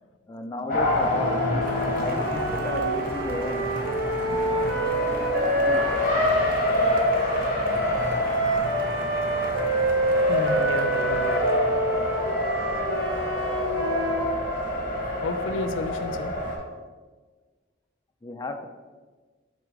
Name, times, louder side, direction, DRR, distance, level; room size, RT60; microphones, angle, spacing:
voice 1, 0.3-3.8 5.6-5.9 18.2-18.7, left 2 dB, 20° left, 5 dB, 0.3 m, -34 dB
Race car auto racing, 0.7-16.6, left 1 dB, 45° left, 1.1 m, -27 dB
sound 1, 1.1-7.1 7.7-14.4, right 1 dB, 85° right, 1.7 m, -27 dB
Cheering / Applause, 1.6-11.7, right 2 dB, 50° right, 0.8 m, -41 dB
voice 2, 10.2-11.8 12.6-12.9 15.2-16.3, left 2 dB, 90° left, 9 dB, 0.5 m, -33 dB
5.0 x 4.1 x 4.7 m, 1.4 s
head